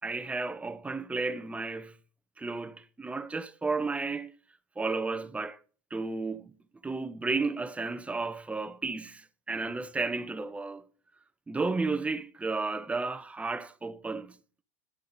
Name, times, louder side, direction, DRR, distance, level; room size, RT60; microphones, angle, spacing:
voice 1, 0.0-1.9 2.4-4.3 4.8-5.6 5.9-6.5 6.8-10.8 11.5-14.4, right 3 dB, 10° right, 0.9 m, -33 dB
11.0 x 7.8 x 5.4 m
hypercardioid pair, 90°, 10 cm